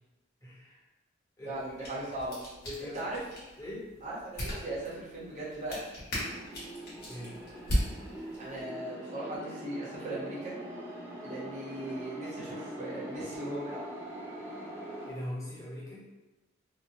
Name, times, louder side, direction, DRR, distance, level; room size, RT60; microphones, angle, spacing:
voice 1, 0.4-0.8 1.4-1.7 2.6-3.1 3.6-3.9 7.1-7.4 15.0-16.1, left 1 dB, 15° left, -7 dB, 0.8 m, -41 dB
sound 1, 1.5-8.6, equal, 55° left, 1.1 m, -38 dB
voice 2, 1.5-2.4 2.8-3.2 4.0-5.8 8.4-10.5 11.2-13.8, right 1 dB, 35° right, -7 dB, 0.8 m, -38 dB
sound 2, 6.1-15.1, right 1 dB, 15° right, 0.4 m, -43 dB
2.9 x 2.1 x 2.6 m, 1.1 s
head